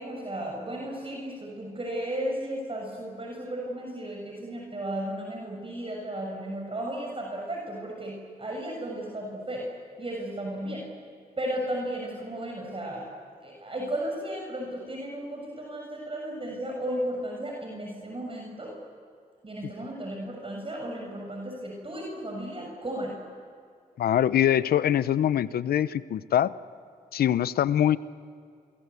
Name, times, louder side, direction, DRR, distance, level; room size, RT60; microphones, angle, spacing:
voice 1, 0.0-9.7 10.0-10.8 11.4-13.1 13.4-18.7 19.4-23.1, right 1 dB, 35° right, -1 dB, 6.8 m, -34 dB
voice 2, 24.0-26.5 27.1-28.0, left 10 dB, 80° left, 16 dB, 0.8 m, -23 dB
29.0 x 24.0 x 8.4 m, 2.3 s
supercardioid pair, 50°, 16 cm